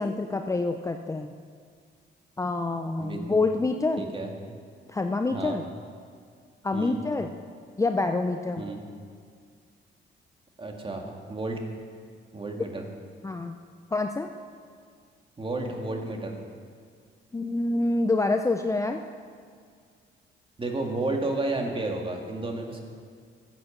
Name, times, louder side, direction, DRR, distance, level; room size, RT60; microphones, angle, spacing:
voice 1, 0.0-1.4 2.4-4.0 4.9-5.6 6.6-7.3 7.8-8.6 13.2-13.5 13.9-14.3 17.3-19.0, left 3 dB, 15° left, 6 dB, 0.6 m, -27 dB
voice 2, 3.0-3.4 4.0-4.3 5.3-5.6 6.7-7.0 8.6-8.8 10.6-11.6 12.3-12.8 15.4-16.4 20.6-22.8, right 2 dB, 25° right, 2 dB, 1.9 m, -32 dB
13.0 x 8.1 x 7.2 m, 2.1 s
cardioid pair, 90°, 20 cm